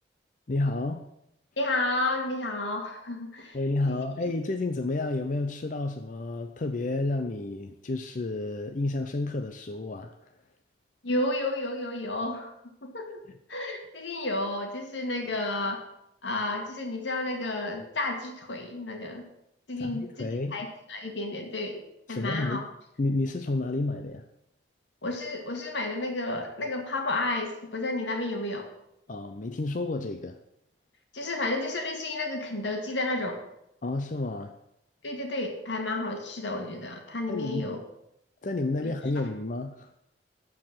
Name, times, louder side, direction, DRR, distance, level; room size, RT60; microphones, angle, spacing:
voice 1, 0.5-1.0 3.5-10.3 19.8-20.6 22.1-22.7 23.0-24.3 29.1-30.4 33.8-34.5 37.3-37.7 38.4-39.9, left 2 dB, 45° left, 6 dB, 0.6 m, -30 dB
voice 2, 1.6-3.5 3.9-4.0 11.0-12.5 12.8-13.2 13.5-15.8 16.2-19.3 19.7-21.8 22.1-22.6 25.0-28.7 31.1-33.4 35.0-37.8 38.8-38.9, left 2 dB, 85° left, 3 dB, 2.1 m, -31 dB
13.5 x 4.9 x 7.5 m, 0.81 s
head